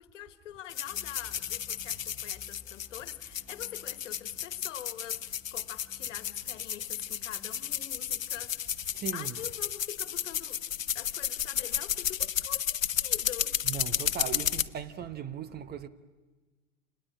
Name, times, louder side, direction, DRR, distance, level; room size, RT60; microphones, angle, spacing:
voice 1, 0.0-8.8 9.1-10.6 10.9-13.6, left 12 dB, 70° left, 1.6 m, -45 dB
sound 1, 0.7-14.6, left 10 dB, 85° left, 0.9 m, -33 dB
sound 2, 0.7-10.7, left 5 dB, 5° right, 6.5 m, -58 dB
voice 2, 8.9-9.3 13.6-15.9, right 8 dB, 25° right, 1.1 m, -38 dB
28.0 x 20.5 x 8.8 m
hypercardioid pair, 100°, 39 cm